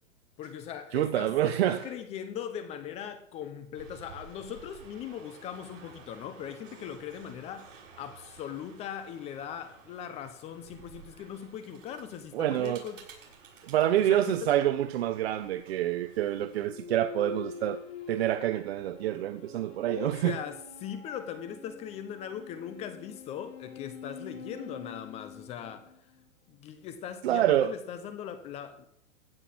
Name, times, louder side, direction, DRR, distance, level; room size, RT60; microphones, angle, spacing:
voice 1, 0.4-13.0 14.0-14.5 19.9-25.9 26.5-28.9, left 9 dB, 15° left, 0.7 m, -40 dB
voice 2, 0.9-1.9 12.3-12.8 13.6-17.8 18.1-20.4 27.2-27.7, right 12 dB, 50° right, 0.8 m, -27 dB
sound 1, 3.8-16.7, right 6 dB, 65° right, 6.9 m, -53 dB
sound 2, 16.6-26.3, left 6 dB, 70° left, 5.0 m, -46 dB
15.5 x 6.1 x 7.7 m
hypercardioid pair, 155°, 39 cm